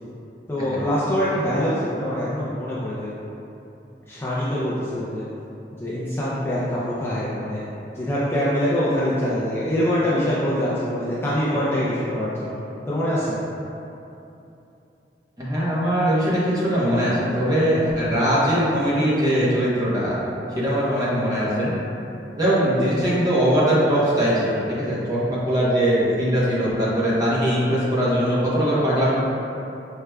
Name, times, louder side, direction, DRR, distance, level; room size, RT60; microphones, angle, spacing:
voice 1, 0.5-3.1 4.1-5.2 5.8-7.6 7.9-12.6 12.9-13.4, equal, 15° left, -9 dB, 0.4 m, -24 dB
voice 2, 15.4-20.1 20.6-21.7 22.4-29.1, equal, 20° right, -9 dB, 0.9 m, -21 dB
4.7 x 3.2 x 2.3 m, 2.9 s
head